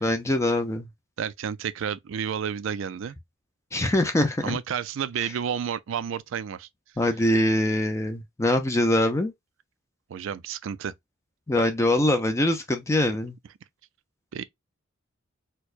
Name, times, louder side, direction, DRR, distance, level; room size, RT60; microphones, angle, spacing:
voice 1, 0.0-0.9 3.7-4.6 5.2-5.3 7.0-9.3 11.5-13.3, left 1 dB, 15° left, 0.4 m, -23 dB
voice 2, 1.2-3.2 4.4-6.7 10.1-10.9 14.3-14.4, right 8 dB, 65° right, 0.4 m, -31 dB
4.5 x 2.2 x 2.4 m
head